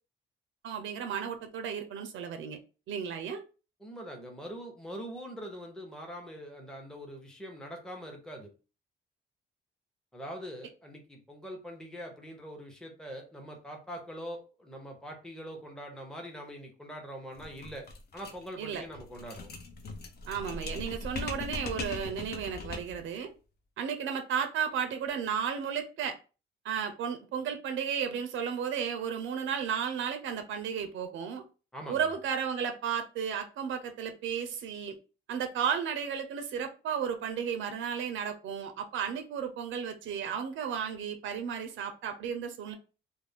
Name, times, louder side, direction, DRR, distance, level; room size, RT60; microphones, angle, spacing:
voice 1, 0.6-2.6 2.9-3.4 18.6-18.8 20.3-23.3 23.8-26.2 26.6-31.4 31.9-35.0 35.3-42.8, right 7 dB, 75° right, 0.5 m, -33 dB
voice 2, 3.8-8.5 10.1-17.9 18.1-19.5 31.7-32.0, equal, 5° left, 0.7 m, -43 dB
sound 1, 17.4-23.1, left 3 dB, 55° left, 0.6 m, -40 dB
2.4 x 2.0 x 3.4 m
cardioid pair, 90°, 20 cm